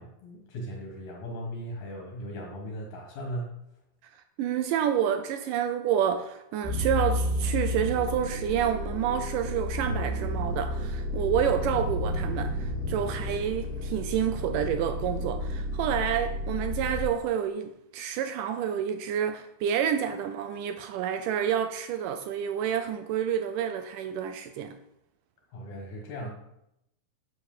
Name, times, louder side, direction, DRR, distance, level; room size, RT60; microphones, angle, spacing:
voice 1, 0.0-3.6 25.5-26.3, equal, 65° left, 2.8 m, -38 dB
voice 2, 4.1-24.8, right 9 dB, 80° right, 2.2 m, -29 dB
sound 1, 6.6-17.0, left 1 dB, 5° right, 1.5 m, -31 dB
7.7 x 6.1 x 7.2 m
omnidirectional pair, 3.9 m